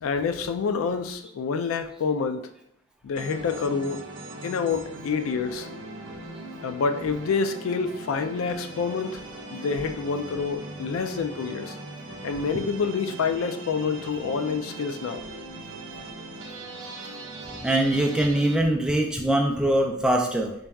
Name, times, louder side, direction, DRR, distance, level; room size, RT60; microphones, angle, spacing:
voice 1, 0.0-2.5 3.0-4.0 4.4-5.7 6.6-9.2 9.5-11.8 12.2-15.3, left 5 dB, 80° left, 9 dB, 0.3 m, -27 dB
sound 1, 3.1-18.6, right 2 dB, 65° right, 0.5 m, -40 dB
voice 2, 17.6-20.5, right 1 dB, 5° right, 1 dB, 0.3 m, -22 dB
4.0 x 2.3 x 3.4 m, 0.70 s
head